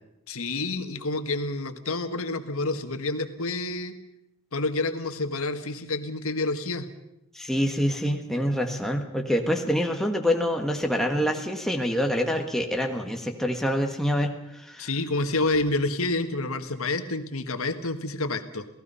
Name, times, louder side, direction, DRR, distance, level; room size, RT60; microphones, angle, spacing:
voice 1, 0.3-4.0 4.5-6.9 14.8-18.7, left 2 dB, 80° left, 8 dB, 1.7 m, -28 dB
voice 2, 7.3-14.9, equal, ahead, 2 dB, 1.5 m, -26 dB
28.0 x 17.5 x 5.6 m, 0.88 s
head